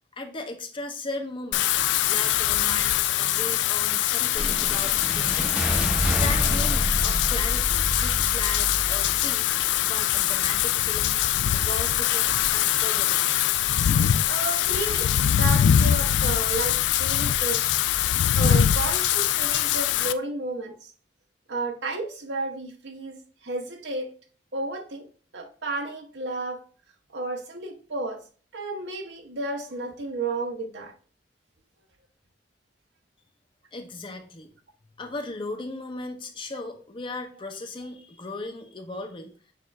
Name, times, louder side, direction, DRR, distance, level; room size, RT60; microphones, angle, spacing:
voice 1, 0.1-1.7 2.1-5.6 6.0-9.5 9.8-11.2 11.5-13.3 33.7-34.5 35.0-39.3, left 2 dB, 30° left, 5 dB, 0.7 m, -37 dB
Wind / Rain, 1.5-20.1, left 11 dB, 75° left, 0.3 m, -23 dB
sound 1, 4.3-12.7, equal, 5° right, 0.7 m, -30 dB
voice 2, 14.2-17.6 18.4-20.9 21.5-24.1 24.5-25.1 25.3-26.6 27.1-28.2 28.5-30.9, right 2 dB, 75° right, 3 dB, 1.0 m, -32 dB
6.5 x 2.5 x 3.2 m, 0.40 s
head